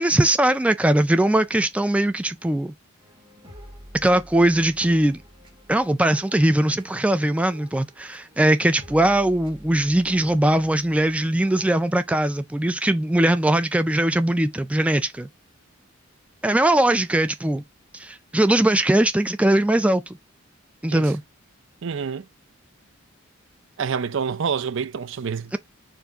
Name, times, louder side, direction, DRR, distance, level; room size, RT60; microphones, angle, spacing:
voice 1, 0.0-2.7 4.0-5.2 5.7-15.3 16.4-17.6 17.9-20.2 20.8-21.2, right 1 dB, 5° right, 0.3 m, -20 dB
sound 1, 3.0-11.8, equal, 25° right, 1.5 m, -48 dB
voice 2, 21.8-22.2 23.8-25.5, right 6 dB, 60° right, 0.5 m, -27 dB
4.6 x 2.6 x 4.4 m
head